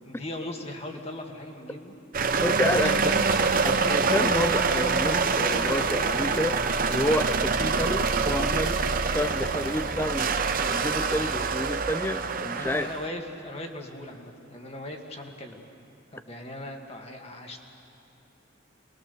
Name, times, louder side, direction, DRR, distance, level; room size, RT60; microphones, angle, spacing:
voice 1, 0.1-1.9 2.7-3.2 12.5-15.7 16.1-17.6, left 1 dB, 30° left, 2 dB, 2.0 m, -39 dB
sound 1, 2.1-13.1, right 4 dB, 45° right, 0.8 m, -25 dB
voice 2, 2.4-3.2 3.6-6.6 6.9-8.8 9.1-12.9, left 1 dB, 10° left, 12 dB, 0.6 m, -29 dB
28.0 x 21.5 x 6.9 m, 2.8 s
head